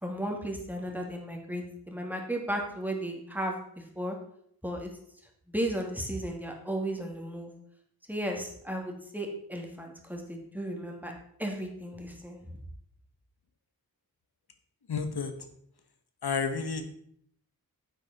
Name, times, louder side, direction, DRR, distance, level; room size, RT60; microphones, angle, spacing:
voice 1, 0.0-4.2 4.6-4.9 5.5-7.5 8.1-11.1 11.4-12.6, right 1 dB, 5° right, 1 dB, 2.2 m, -35 dB
voice 2, 14.9-15.3 16.2-16.9, left 5 dB, 85° left, 7 dB, 1.2 m, -30 dB
9.9 x 8.3 x 4.1 m, 0.69 s
wide cardioid pair, 85°, 37 cm